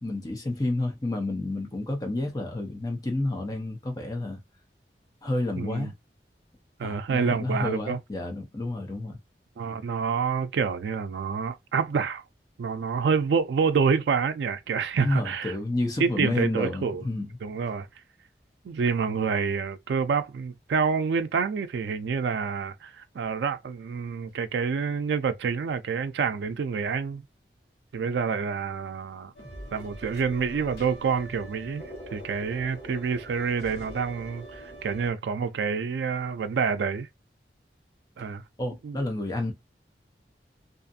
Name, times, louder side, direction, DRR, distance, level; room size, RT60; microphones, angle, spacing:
voice 1, 0.0-4.4 5.2-5.9 6.8-9.2 15.0-17.3 38.6-39.5, left 2 dB, 20° left, 0.6 m, -30 dB
voice 2, 5.5-5.9 6.8-8.0 9.6-12.2 12.6-15.5 16.0-17.0 17.4-17.9 18.6-27.2 27.9-29.3 29.7-31.8 32.1-37.1 38.2-38.4 38.8-39.0, right 5 dB, 80° right, 0.3 m, -27 dB
sound 1, 29.3-35.1, equal, 65° left, 1.2 m, -43 dB
2.5 x 2.4 x 2.6 m
head